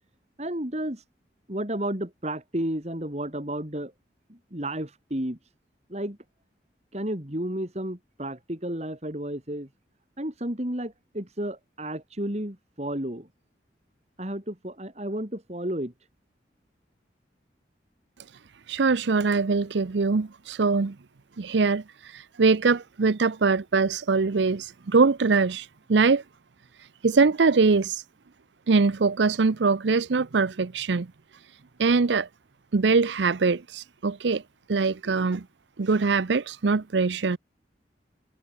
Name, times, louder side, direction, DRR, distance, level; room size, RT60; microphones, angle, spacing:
voice 1, 0.4-1.0 1.5-3.9 4.3-5.4 5.9-6.2 6.9-9.7 10.2-13.3 14.2-15.9, right 1 dB, 35° right, 3.1 m, -32 dB
voice 2, 18.7-20.9 21.4-26.2 27.0-28.0 28.7-31.1 31.8-32.3 32.7-34.4 34.7-35.4 35.8-37.4, right 4 dB, 75° right, 0.6 m, -23 dB
head